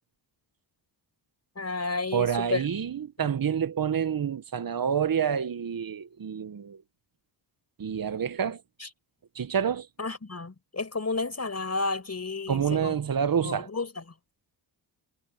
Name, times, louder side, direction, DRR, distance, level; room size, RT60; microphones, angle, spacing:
voice 1, 1.6-2.6 3.2-3.3 8.8-8.9 10.0-12.9 13.4-14.0, left 3 dB, 30° left, 5.7 m, -32 dB
voice 2, 2.1-6.8 7.8-8.6 9.3-9.9 12.5-13.7, right 8 dB, 45° right, 1.2 m, -28 dB
cardioid pair, 75°, 49 cm